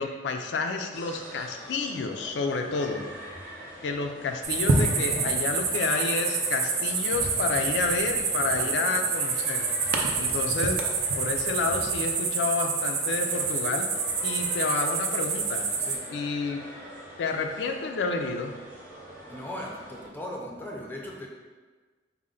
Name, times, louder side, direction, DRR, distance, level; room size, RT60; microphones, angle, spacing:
voice 1, 0.0-3.0 3.8-9.7 10.1-10.8 11.2-13.9 14.2-15.6 16.1-16.6 17.2-18.5, left 4 dB, 80° left, 4 dB, 0.3 m, -30 dB
sound 1, 0.9-20.1, right 1 dB, 10° right, 0.8 m, -44 dB
sound 2, 4.4-16.0, right 4 dB, 55° right, 0.4 m, -27 dB
voice 2, 8.6-9.0 10.1-10.5 15.8-16.0 19.3-21.3, left 1 dB, 10° left, -1 dB, 0.4 m, -39 dB
4.2 x 2.1 x 3.7 m, 1.4 s
head